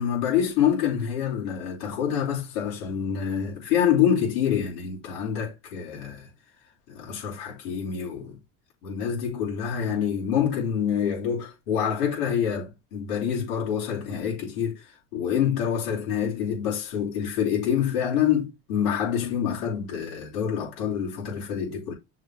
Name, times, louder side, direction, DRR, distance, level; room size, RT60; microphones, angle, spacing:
voice 1, 0.0-6.3 6.9-8.4 8.8-14.8 15.1-21.9, left 8 dB, 90° left, 3.9 m, -26 dB
6.5 x 4.2 x 4.0 m
hypercardioid pair, 70°, 44 cm